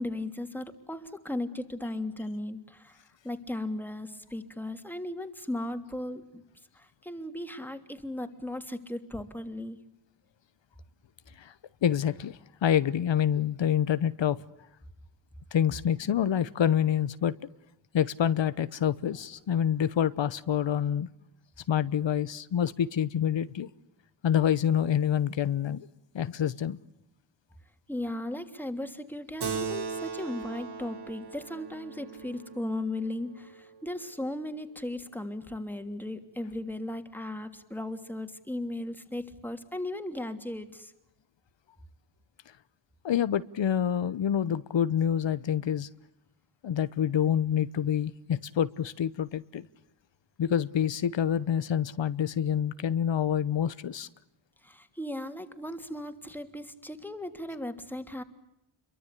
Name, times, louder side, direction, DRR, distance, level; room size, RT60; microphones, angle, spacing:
voice 1, 0.0-3.0 3.2-6.4 6.7-9.8 27.9-40.9 54.6-58.2, left 1 dB, 5° left, 3.0 m, -36 dB
voice 2, 11.8-14.4 15.5-17.3 17.9-21.1 21.7-23.7 24.2-25.9 26.1-26.8 43.0-45.9 46.6-49.7 50.4-54.1, left 9 dB, 80° left, 1.0 m, -27 dB
Keyboard (musical), 29.4-34.3, right 6 dB, 65° right, 3.1 m, -38 dB
30.0 x 23.5 x 8.4 m
wide cardioid pair, 105°, 44 cm